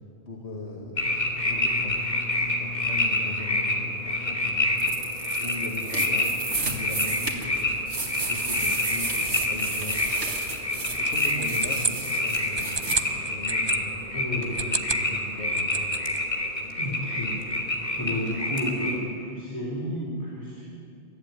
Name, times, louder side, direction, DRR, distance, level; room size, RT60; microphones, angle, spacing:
voice 1, 0.3-2.0 2.3-6.3 6.7-7.8 8.1-10.0 10.8-15.9, left 2 dB, 70° left, -2 dB, 2.4 m, -39 dB
sound 1, 1.0-18.9, left 1 dB, 40° left, 2.8 m, -28 dB
sound 2, 4.8-13.0, right 3 dB, 85° right, 2.4 m, -33 dB
sound 3, 11.0-13.8 14.4-15.1 15.4-16.2, right 4 dB, 30° right, 0.7 m, -31 dB
voice 2, 14.1-14.6 16.8-17.4 18.0-20.6, equal, 15° left, -5 dB, 4.0 m, -31 dB
22.5 x 14.0 x 9.7 m, 2.5 s
omnidirectional pair, 1.2 m